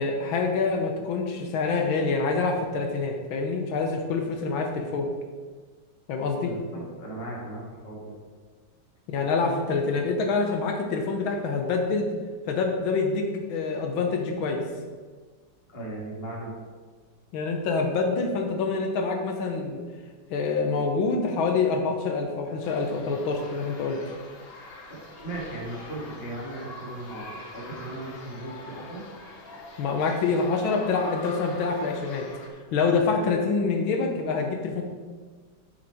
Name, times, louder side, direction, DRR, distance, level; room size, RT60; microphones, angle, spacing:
voice 1, 0.0-5.1 6.1-6.5 9.1-12.1 12.5-14.6 17.3-19.8 20.3-24.0 29.8-32.3 32.5-34.8, left 4 dB, 85° left, 3 dB, 1.7 m, -26 dB
voice 2, 6.4-8.1 15.7-16.5 24.9-29.0, right 1 dB, 30° left, -4 dB, 1.9 m, -37 dB
sound 1, 22.6-32.5, left 2 dB, 45° left, 0.8 m, -44 dB
8.9 x 4.4 x 4.4 m, 1.5 s
omnidirectional pair, 2.1 m